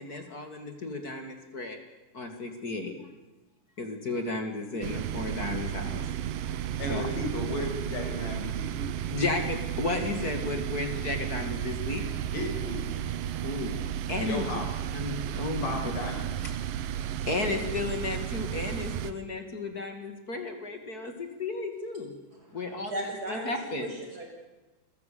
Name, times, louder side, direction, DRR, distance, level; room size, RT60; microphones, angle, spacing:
voice 1, 0.0-1.8 2.1-2.9 3.8-6.0 6.9-7.1 9.1-12.0 13.4-13.8 14.1-14.4 14.9-15.8 17.2-22.1 22.5-23.9, left 3 dB, 35° left, 5 dB, 1.6 m, -33 dB
sound 1, 4.8-19.1, right 11 dB, 75° right, 2.1 m, -33 dB
voice 2, 6.8-9.0 12.3-12.8 14.2-14.7 15.6-16.3, left 2 dB, 80° left, 2 dB, 7.7 m, -34 dB
voice 3, 22.5-24.3, right 1 dB, 20° right, 0 dB, 6.9 m, -37 dB
27.0 x 15.5 x 8.5 m, 1.1 s
omnidirectional pair, 4.9 m